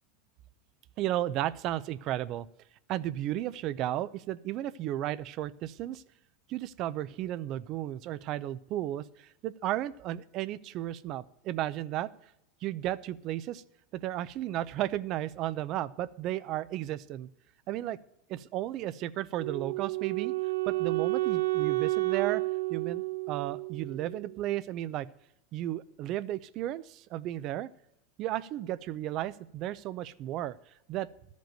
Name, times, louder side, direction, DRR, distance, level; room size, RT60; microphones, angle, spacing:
voice 1, 1.0-2.5 2.9-6.0 6.5-12.1 12.6-13.6 13.9-17.3 17.7-18.0 18.3-20.3 20.7-22.4 22.7-25.1 25.5-27.7 28.2-30.6 30.9-31.1, right 13 dB, 40° right, 17 dB, 0.5 m, -34 dB
Wind instrument woodwind instrument, 19.4-24.4, right 21 dB, 75° right, 0.7 m, -31 dB
13.0 x 5.2 x 9.1 m, 0.81 s
supercardioid pair, 150°, 0 cm